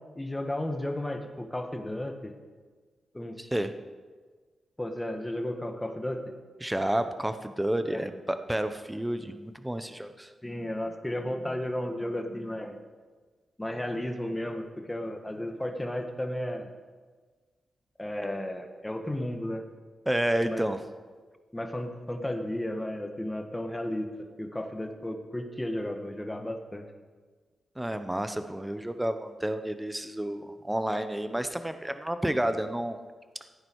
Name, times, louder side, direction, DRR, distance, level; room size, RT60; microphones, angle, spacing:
voice 1, 0.1-2.3 3.1-3.4 4.8-6.3 7.9-8.0 10.4-12.8 13.6-16.7 18.0-19.7 20.4-20.7 21.5-24.1 24.4-26.8, left 1 dB, 15° left, 5 dB, 1.5 m, -33 dB
voice 2, 3.4-3.7 6.6-10.3 20.1-20.8 27.8-33.0, right 1 dB, 10° right, 9 dB, 0.8 m, -30 dB
15.5 x 9.6 x 4.7 m, 1.4 s
cardioid pair, 80°, 0 cm